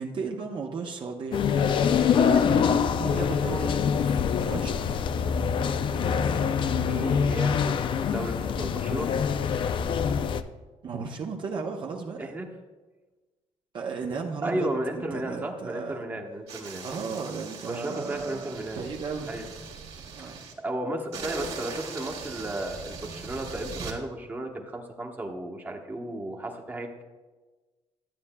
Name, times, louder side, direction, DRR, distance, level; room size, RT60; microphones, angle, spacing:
voice 1, 0.0-1.5 2.1-5.0 10.8-12.3 13.7-16.0 16.8-19.3 20.1-20.4, right 5 dB, 50° right, 1 dB, 0.7 m, -35 dB
sound 1, 1.3-10.4, left 7 dB, 50° left, 0.4 m, -25 dB
voice 2, 6.7-9.2 12.2-12.5 14.4-16.9 17.7-18.9 19.3-19.5 20.2-20.3 20.6-27.0, right 1 dB, 15° right, 0 dB, 1.0 m, -34 dB
sound 2, 16.5-20.5 21.1-24.0, right 5 dB, 75° right, 1.9 m, -40 dB
12.0 x 8.3 x 2.2 m, 1.3 s
cardioid pair, 115°, 11 cm